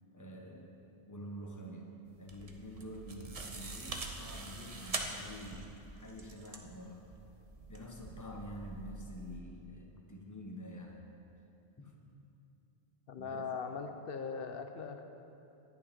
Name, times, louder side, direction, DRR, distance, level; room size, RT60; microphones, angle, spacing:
voice 1, 0.1-0.8 1.1-1.9 2.2-7.1 7.7-11.0 11.8-11.9 13.2-13.5, equal, 15° left, 0 dB, 1.1 m, -47 dB
sound 1, 2.1-9.4, right 3 dB, 35° right, 0.8 m, -44 dB
voice 2, 13.1-15.0, left 5 dB, 60° left, 7 dB, 0.8 m, -40 dB
10.5 x 10.0 x 5.2 m, 2.8 s
omnidirectional pair, 1.1 m